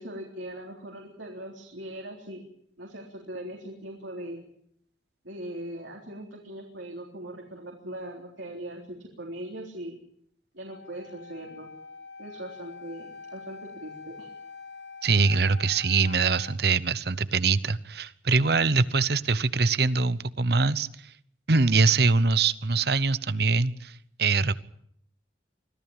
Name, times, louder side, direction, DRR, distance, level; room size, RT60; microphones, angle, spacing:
voice 1, 0.0-2.4 2.8-4.4 5.2-10.0 10.5-11.7 12.2-14.3, right 1 dB, 80° right, 0 dB, 3.8 m, -40 dB
Wind instrument woodwind instrument, 10.7-16.6, left 4 dB, 85° left, 2.5 m, -45 dB
voice 2, 15.0-21.1 21.5-24.5, right 4 dB, 55° right, 16 dB, 0.9 m, -23 dB
25.0 x 16.0 x 8.9 m, 0.71 s
head